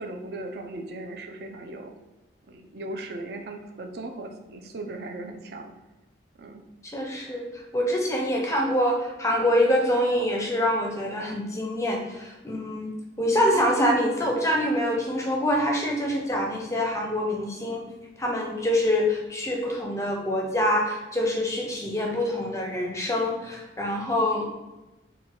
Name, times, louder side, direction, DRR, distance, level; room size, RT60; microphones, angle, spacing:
voice 1, 0.0-1.9 2.5-5.7 6.4-6.6, right 2 dB, 55° right, 4 dB, 0.4 m, -37 dB
voice 2, 6.8-12.9 13.2-17.8 18.2-24.4, equal, 15° left, 0 dB, 0.5 m, -25 dB
4.0 x 2.2 x 3.7 m, 1.0 s
head